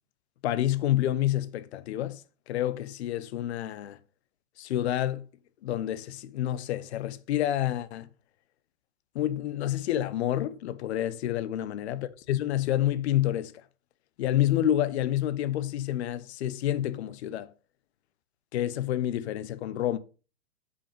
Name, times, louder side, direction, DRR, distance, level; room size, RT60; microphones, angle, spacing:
voice 1, 0.4-2.2 2.5-4.0 4.6-5.2 5.6-8.1 9.1-13.5 14.2-17.5 18.5-20.0, left 12 dB, 60° left, 0.8 m, -28 dB
8.4 x 5.3 x 5.3 m
hypercardioid pair, 140°, 37 cm